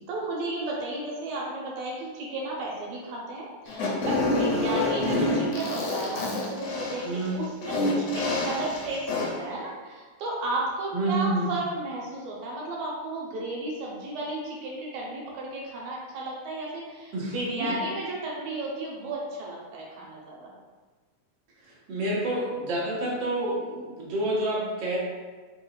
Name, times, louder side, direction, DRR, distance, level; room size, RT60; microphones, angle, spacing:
voice 1, 0.0-20.5, right 2 dB, 80° right, -3 dB, 2.2 m, -33 dB
Fart, 3.7-9.5, left 2 dB, 85° left, 2.3 m, -27 dB
voice 2, 4.4-4.8 7.0-7.4 10.9-11.5 17.1-17.8 21.6-25.0, right 1 dB, 55° right, -6 dB, 1.4 m, -29 dB
4.8 x 3.9 x 2.3 m, 1.4 s
omnidirectional pair, 3.3 m